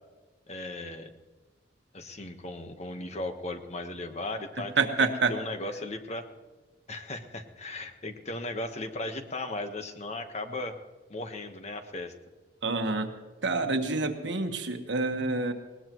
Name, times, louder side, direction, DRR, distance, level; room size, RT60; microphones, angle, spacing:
voice 1, 0.5-1.1 1.9-4.7 5.3-6.3 6.9-10.7 11.1-12.1, left 2 dB, 40° left, 6 dB, 1.2 m, -36 dB
voice 2, 4.8-5.3 12.6-13.1 13.4-15.5, right 3 dB, 80° right, 5 dB, 1.4 m, -27 dB
20.5 x 18.5 x 3.1 m, 1.2 s
head